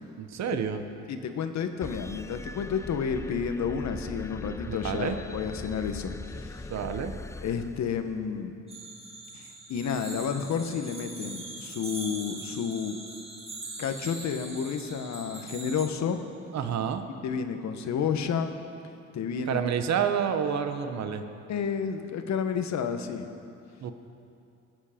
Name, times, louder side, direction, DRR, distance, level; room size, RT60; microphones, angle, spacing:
voice 1, 0.2-0.8 4.7-5.2 6.7-7.1 16.5-17.1 19.5-21.2 23.8-23.9, right 7 dB, 60° right, 8 dB, 1.0 m, -29 dB
voice 2, 1.1-6.7 7.4-8.5 9.3-13.0 13.8-16.2 17.2-18.6 19.1-19.6 21.5-23.3, left 6 dB, 65° left, 7 dB, 1.1 m, -31 dB
sound 1, 1.8-8.4, left 2 dB, 10° left, 0.4 m, -40 dB
sound 2, 8.7-15.9, right 2 dB, 20° right, 2.0 m, -42 dB
20.5 x 7.3 x 5.1 m, 2.6 s
cardioid pair, 90°, 30 cm